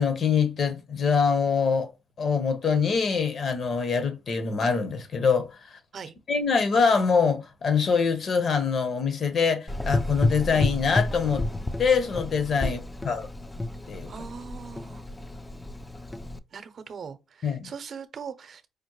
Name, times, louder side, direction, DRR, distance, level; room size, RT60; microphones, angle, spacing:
voice 1, 0.0-1.9 2.2-5.8 6.3-11.5 11.8-13.3 13.9-14.1 17.4-17.7, left 5 dB, 50° left, 0.9 m, -24 dB
Gurgling / Engine, 9.7-16.4, left 2 dB, 15° left, 0.4 m, -31 dB
voice 2, 14.1-15.0 16.5-18.7, right 6 dB, 50° right, 0.6 m, -40 dB
5.0 x 2.1 x 3.0 m
cardioid pair, 90°, 0 cm